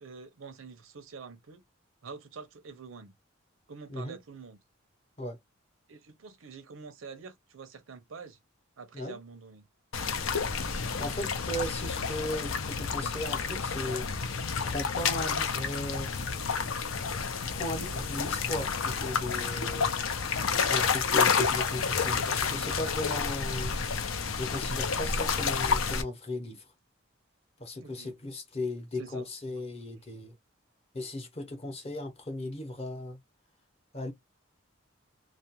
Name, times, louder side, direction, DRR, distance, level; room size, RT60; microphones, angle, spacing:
voice 1, 0.0-1.6 2.0-3.1 3.7-4.6 5.9-8.4 8.8-9.7 27.8-28.1 29.0-29.3, right 5 dB, 85° right, 0.6 m, -46 dB
sound 1, 9.9-26.0, left 5 dB, 85° left, 0.6 m, -30 dB
voice 2, 11.0-14.1 14.6-16.1 17.5-20.0 20.7-23.8 24.4-26.7 27.6-30.4 30.9-33.2 33.9-34.1, left 1 dB, 30° left, 0.7 m, -36 dB
2.4 x 2.1 x 2.8 m
head